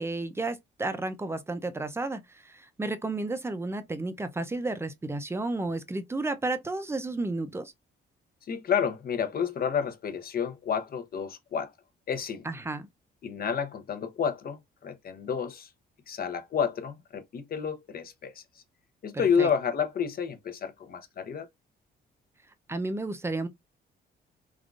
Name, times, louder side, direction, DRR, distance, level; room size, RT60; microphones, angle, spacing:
voice 1, 0.0-7.7 12.4-12.9 19.4-19.5 22.7-23.5, right 2 dB, 15° right, 0.5 m, -32 dB
voice 2, 8.5-11.7 12.1-12.4 13.2-15.7 16.1-18.4 19.0-21.5, left 7 dB, 50° left, 0.7 m, -30 dB
3.6 x 2.3 x 2.4 m
cardioid pair, 90°, 20 cm